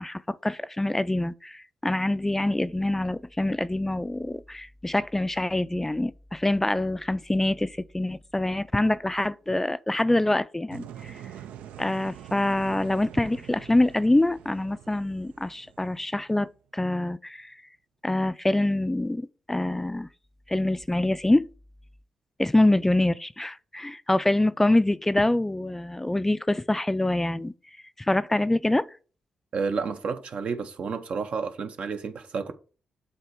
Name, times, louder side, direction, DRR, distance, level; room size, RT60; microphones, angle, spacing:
voice 1, 0.0-11.2 11.8-17.6 18.0-20.1 20.5-21.5 22.4-27.5 28.0-28.9, left 1 dB, 15° left, 0.3 m, -25 dB
sound 1, 10.7-16.6, right 10 dB, 85° right, 0.3 m, -45 dB
voice 2, 29.5-32.5, right 5 dB, 65° right, 0.7 m, -30 dB
7.8 x 2.8 x 4.6 m
supercardioid pair, 55°, 2 cm